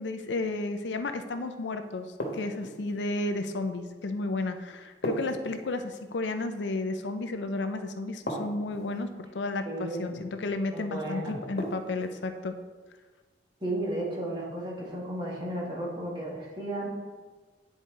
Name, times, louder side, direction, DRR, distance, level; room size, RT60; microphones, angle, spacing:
voice 1, 0.0-2.1 2.3-12.5, left 2 dB, 85° left, 8 dB, 0.5 m, -32 dB
sound 1, 2.2-3.0 5.0-6.1 8.3-9.0 11.6-12.2, equal, 65° left, 1.2 m, -35 dB
voice 2, 9.7-10.2 10.7-11.3 13.6-16.9, right 1 dB, 25° right, -4 dB, 1.5 m, -34 dB
9.6 x 4.0 x 3.7 m, 1.4 s
head